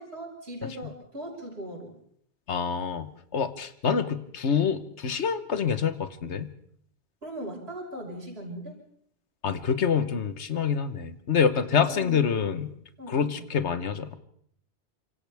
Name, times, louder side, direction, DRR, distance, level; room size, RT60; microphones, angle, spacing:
voice 1, 0.0-2.0 7.2-8.8 11.7-12.5 13.0-13.5, equal, 65° right, -1 dB, 5.8 m, -39 dB
voice 2, 2.5-6.5 9.4-12.7 13.1-14.1, left 6 dB, 80° left, 11 dB, 1.4 m, -26 dB
29.0 x 25.5 x 3.5 m, 0.66 s
omnidirectional pair, 1.1 m